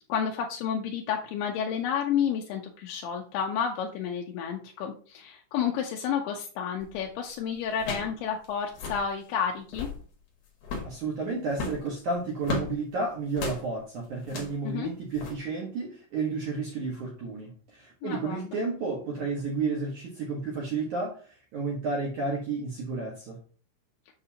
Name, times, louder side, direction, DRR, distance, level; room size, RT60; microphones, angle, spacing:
voice 1, 0.1-9.9 14.6-14.9 18.0-18.6, left 7 dB, 80° left, 1 dB, 2.3 m, -31 dB
sound 1, 6.8-7.1 7.8-8.2 8.4-8.5 8.7-9.1 9.6-10.0 10.6-11.0 11.5-12.7 13.3-13.6 14.2-14.6 15.1-15.3, left 3 dB, 65° left, 1.7 m, -35 dB
voice 2, 10.8-23.4, right 3 dB, 70° right, -2 dB, 1.9 m, -32 dB
8.0 x 6.6 x 2.8 m, 0.41 s
omnidirectional pair, 5.5 m